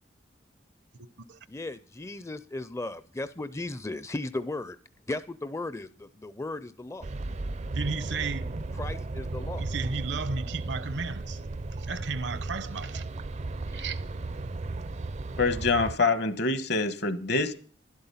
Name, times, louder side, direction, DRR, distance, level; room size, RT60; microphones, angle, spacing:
voice 1, 1.5-4.8 5.1-7.1 8.8-9.7 13.7-13.9, left 2 dB, 15° left, 0.5 m, -36 dB
sound 1, 7.0-16.0, right 2 dB, 40° right, 0.5 m, -35 dB
voice 2, 7.7-8.6 9.6-11.4 11.8-13.1 13.7-14.0, right 4 dB, 70° right, 0.8 m, -34 dB
voice 3, 15.4-17.5, left 3 dB, 65° left, 1.4 m, -25 dB
12.0 x 11.0 x 5.7 m
head